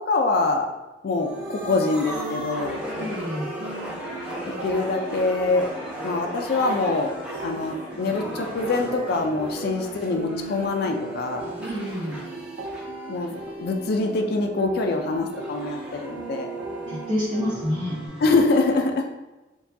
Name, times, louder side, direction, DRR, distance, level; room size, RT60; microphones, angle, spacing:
voice 1, 0.1-0.7 1.0-2.8 4.6-5.7 6.0-7.1 7.4-11.5 13.1-16.5 18.2-19.0, left 3 dB, 60° left, 3 dB, 0.4 m, -24 dB
sound 1, 1.2-14.2 14.8-18.4, equal, 5° right, 1.0 m, -37 dB
sound 2, 1.3-18.1, right 2 dB, 80° right, 0.4 m, -37 dB
voice 2, 2.9-3.5 11.6-12.2 16.7-18.0, left 1 dB, 30° right, -13 dB, 1.0 m, -28 dB
4.5 x 2.2 x 2.6 m, 1.1 s
head